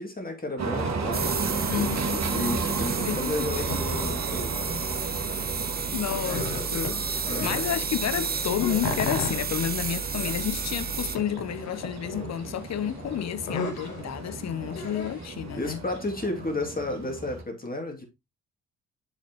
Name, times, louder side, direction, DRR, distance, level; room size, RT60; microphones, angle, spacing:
voice 1, 0.0-4.6 7.3-7.6 14.7-14.9 15.6-18.0, left 2 dB, 20° left, 2.5 m, -33 dB
sound 1, 0.6-17.4, right 4 dB, 45° right, 2.1 m, -34 dB
sound 2, 1.1-11.2, right 5 dB, 25° right, 0.9 m, -31 dB
voice 2, 1.7-2.2 3.0-3.5 5.3-5.5 5.9-15.8, left 10 dB, 45° left, 0.8 m, -31 dB
sound 3, 3.7-5.4 5.7-7.8 8.2-15.3, left 3 dB, 65° left, 2.7 m, -35 dB
7.2 x 6.7 x 3.0 m
hypercardioid pair, 50°, 38 cm